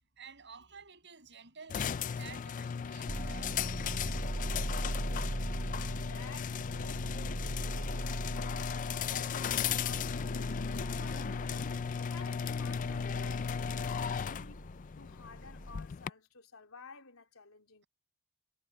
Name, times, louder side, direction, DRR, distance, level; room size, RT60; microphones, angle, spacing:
voice 1, 0.2-4.7, right 6 dB, 55° right, 7.0 m, -53 dB
sound 1, 1.7-16.1, left 7 dB, 40° left, 0.3 m, -36 dB
sound 2, 3.1-15.8, right 1 dB, 25° right, 0.6 m, -40 dB
voice 2, 5.6-14.6 15.0-17.8, left 4 dB, 90° left, 3.4 m, -53 dB
head